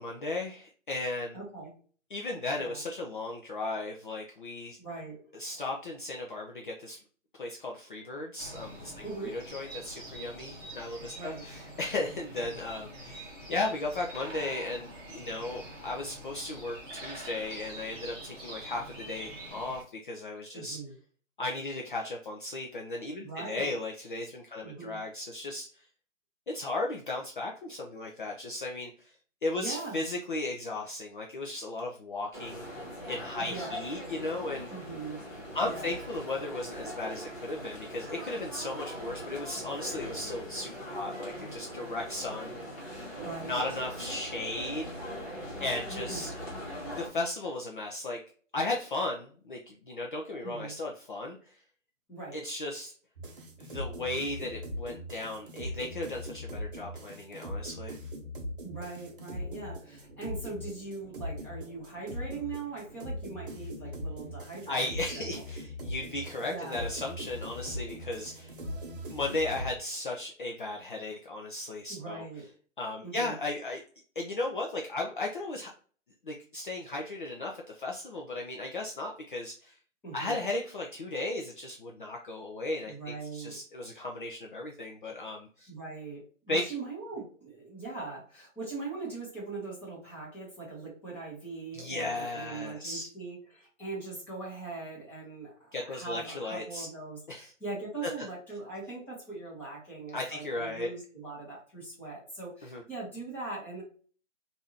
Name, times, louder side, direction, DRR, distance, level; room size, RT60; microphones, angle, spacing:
voice 1, 0.0-1.4 2.1-4.8 5.3-7.0 7.4-20.8 21.4-25.9 26.5-29.1 29.4-32.6 33.1-34.7 35.5-42.5 43.4-44.9 45.6-46.3 46.9-48.2 48.5-51.6 52.3-52.9 53.6-58.0 64.7-68.6 69.1-72.2 72.8-73.8 74.2-75.7 76.2-79.8 80.1-85.7 86.5-86.7 91.7-93.1 95.7-96.9 97.3-97.5 98.0-98.1 100.1-100.9 102.6-102.8, left 2 dB, 40° left, 0 dB, 0.5 m, -36 dB
voice 2, 1.3-1.7 2.6-2.8 4.8-5.2 9.0-9.4 11.1-11.4 20.5-20.9 23.2-23.8 24.6-25.0 29.6-30.0 33.4-33.7 34.7-35.2 35.6-35.9 43.1-43.6 45.9-46.4 50.4-50.8 52.1-52.4 58.6-65.3 66.5-66.9 71.9-72.5 73.0-73.3 80.0-80.4 82.9-83.6 85.7-103.8, right 3 dB, 5° left, -8 dB, 1.0 m, -41 dB
sound 1, 8.4-19.8, right 1 dB, 20° right, 1.0 m, -45 dB
sound 2, 32.3-47.1, equal, 25° left, 1.4 m, -41 dB
sound 3, 53.2-69.7, equal, 45° right, 0.8 m, -40 dB
3.5 x 2.6 x 2.7 m, 0.43 s
hypercardioid pair, 150°, 39 cm